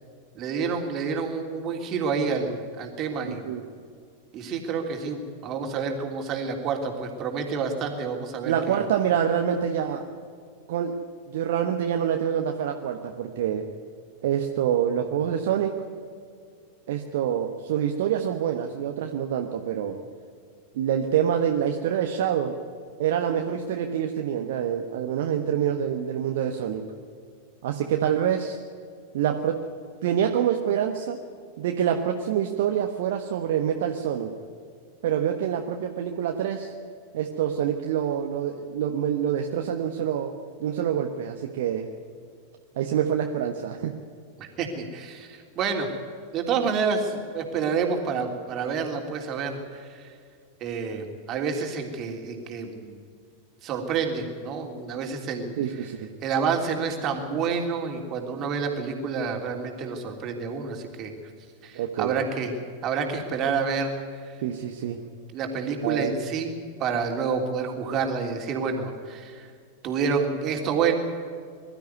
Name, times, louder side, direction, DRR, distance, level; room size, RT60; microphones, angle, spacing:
voice 1, 0.3-3.5 4.3-8.8 44.4-45.9 46.3-50.1 50.6-53.0 53.6-55.9 56.2-61.1 61.6-62.6 62.8-64.2 65.3-66.5 66.8-69.5 69.8-71.0, right 5 dB, 35° right, 3 dB, 3.2 m, -28 dB
voice 2, 3.2-3.6 8.4-10.1 10.7-13.7 14.2-15.8 16.9-20.0 20.7-22.6 23.0-26.8 27.6-28.6 29.1-29.6 30.0-31.2 31.6-34.3 35.0-36.7 37.1-40.3 40.6-41.9 42.8-44.0 55.6-56.1 61.7-62.1 64.4-65.0 65.8-66.2, right 9 dB, 55° right, 4 dB, 1.3 m, -26 dB
22.0 x 13.0 x 9.5 m, 2.2 s
figure-of-eight pair, 90°, 0 cm